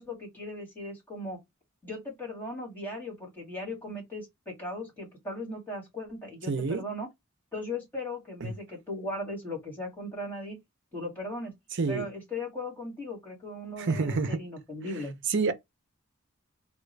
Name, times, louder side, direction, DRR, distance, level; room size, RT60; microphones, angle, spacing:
voice 1, 0.0-1.4 1.8-7.1 7.5-10.6 10.9-11.5 11.9-15.2, left 1 dB, 10° left, 1.9 m, -38 dB
voice 2, 6.5-6.8 8.4-8.5 11.7-12.1 13.8-14.4 15.3-15.5, right 4 dB, 60° right, 0.6 m, -28 dB
3.6 x 2.2 x 3.3 m
head